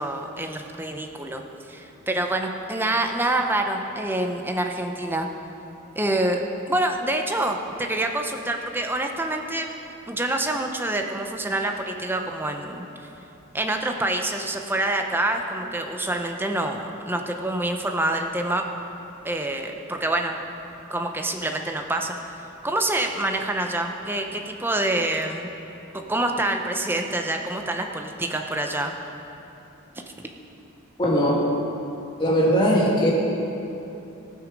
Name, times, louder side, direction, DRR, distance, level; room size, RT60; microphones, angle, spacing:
voice 1, 0.0-1.4 1.7-5.3 5.9-9.7 10.1-12.8 13.5-18.6 19.2-20.4 20.9-22.4 22.6-25.5 25.9-28.9, right 1 dB, 10° right, 3 dB, 0.7 m, -26 dB
voice 2, 31.0-31.5 32.2-33.1, equal, 25° left, -5 dB, 2.2 m, -19 dB
17.5 x 6.1 x 5.2 m, 3.0 s
head